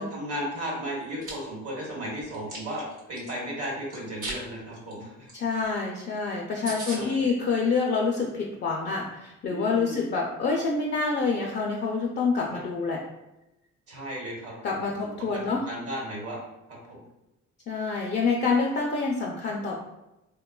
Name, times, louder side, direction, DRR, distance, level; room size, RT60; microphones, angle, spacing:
voice 1, 0.0-5.3 6.6-7.2 9.4-10.1 12.5-12.6 13.9-14.8 15.2-16.4 16.7-17.0, equal, 55° right, -3 dB, 1.1 m, -35 dB
Chewing mastication, 1.0-1.3 1.8-3.3 3.9-4.4 4.7-4.9 5.3-5.4 5.6-5.7 6.1-6.2 6.4-6.5 6.6-7.0, right 2 dB, 80° right, 1.0 m, -37 dB
voice 2, 5.3-13.0 14.6-15.7 17.7-19.8, left 4 dB, 35° left, -1 dB, 0.4 m, -27 dB
3.0 x 2.2 x 2.2 m, 0.92 s
cardioid pair, 90°, 30 cm